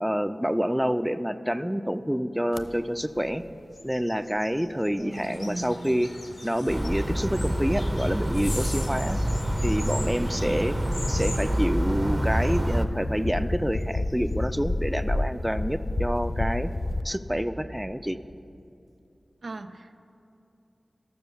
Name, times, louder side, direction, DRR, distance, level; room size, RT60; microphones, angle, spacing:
voice 1, 0.0-3.4 3.8-6.1 6.4-9.2 9.6-10.8 11.1-16.7 17.0-18.2, equal, 5° right, 11 dB, 0.4 m, -27 dB
sound 1, 2.5-2.7 3.2-3.4 3.8-5.3 5.8-5.9 7.7-17.0, left 2 dB, 50° left, 0.8 m, -32 dB
voice 2, 5.0-6.0 10.4-10.7 19.4-20.0, right 2 dB, 90° right, 7 dB, 0.5 m, -38 dB
sound 2, 5.1-11.7, left 2 dB, 90° left, 1.1 m, -40 dB
sound 3, 6.7-12.8, right 1 dB, 30° right, 0.8 m, -27 dB
12.5 x 6.9 x 6.8 m, 2.6 s
wide cardioid pair, 50°, 0 cm